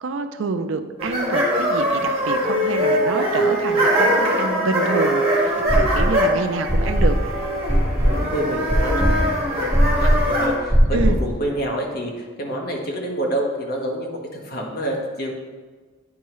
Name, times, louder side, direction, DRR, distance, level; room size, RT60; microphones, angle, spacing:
voice 1, 0.0-7.2 10.9-11.2, right 4 dB, 65° right, 9 dB, 0.4 m, -27 dB
sound 1, 1.0-10.6, equal, 30° right, 1.5 m, -22 dB
sound 2, 5.7-6.3 6.7-11.3, equal, 10° left, 1.5 m, -19 dB
voice 2, 8.0-15.3, right 1 dB, 45° left, 0 dB, 1.2 m, -28 dB
9.7 x 4.6 x 3.1 m, 1.4 s
head